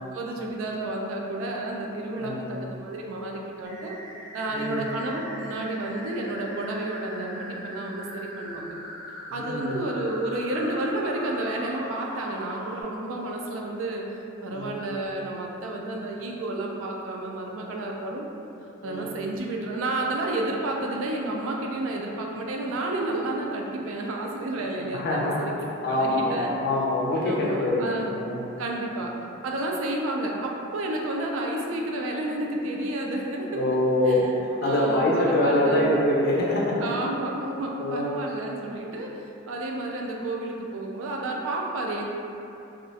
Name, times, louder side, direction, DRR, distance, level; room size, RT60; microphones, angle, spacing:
voice 1, 0.1-3.9 4.3-8.7 9.3-14.0 14.4-18.3 18.8-25.5 25.9-26.5 27.2-28.2 28.6-29.1 29.4-33.6 34.0-34.3 34.6-35.9 36.8-39.1 39.5-42.1, right 2 dB, 75° right, 0 dB, 0.3 m, -31 dB
voice 2, 2.1-2.5 4.5-4.9 9.3-9.8 14.5-14.7 18.8-19.1 24.9-25.4 25.8-28.4 33.5-36.9 37.8-38.0, left 1 dB, 50° left, -5 dB, 0.4 m, -24 dB
sound 1, 3.6-12.8, equal, 15° right, 0.6 m, -41 dB
2.3 x 2.0 x 2.6 m, 2.8 s
head